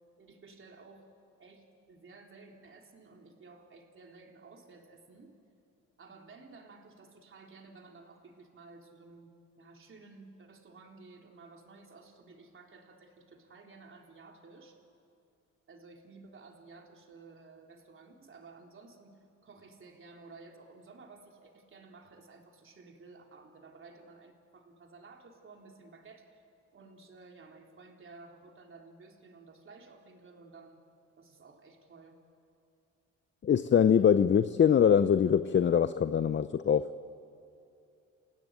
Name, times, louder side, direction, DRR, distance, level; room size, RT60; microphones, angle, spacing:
voice 1, 0.2-1.1 1.4-5.3 6.0-14.8 15.7-26.4 26.7-30.8 31.2-32.2, right 3 dB, 45° right, 3.8 m, -54 dB
voice 2, 33.4-36.9, left 8 dB, 40° left, 0.7 m, -23 dB
30.0 x 17.0 x 9.1 m
cardioid pair, 90°, 30 cm